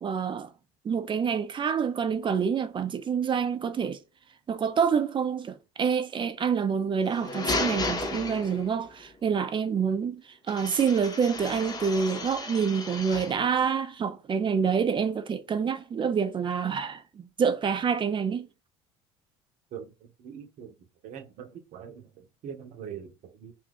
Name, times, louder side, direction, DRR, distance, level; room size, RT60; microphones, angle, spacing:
voice 1, 0.0-0.5 0.8-4.0 4.5-18.5, right 6 dB, 35° right, 0.6 m, -27 dB
sound 1, 7.0-8.9 10.5-13.5, left 2 dB, 25° left, 0.8 m, -34 dB
voice 2, 20.2-20.7 21.0-23.5, right 8 dB, 60° right, 0.8 m, -42 dB
2.6 x 2.4 x 3.6 m
hypercardioid pair, 70°, 15 cm